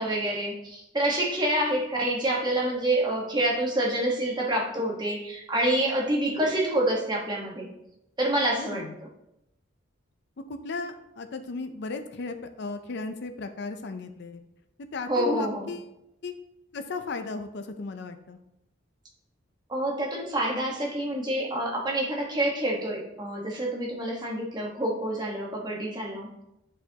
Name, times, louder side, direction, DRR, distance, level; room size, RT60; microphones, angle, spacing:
voice 1, 0.0-7.7 8.2-8.8 15.1-15.7 19.7-26.3, right 1 dB, 20° right, -2 dB, 1.2 m, -27 dB
voice 2, 8.6-8.9 10.5-14.4 14.9-15.9 16.2-16.3 16.7-18.4, left 3 dB, 60° left, 7 dB, 0.5 m, -35 dB
9.0 x 4.8 x 2.8 m, 0.84 s
head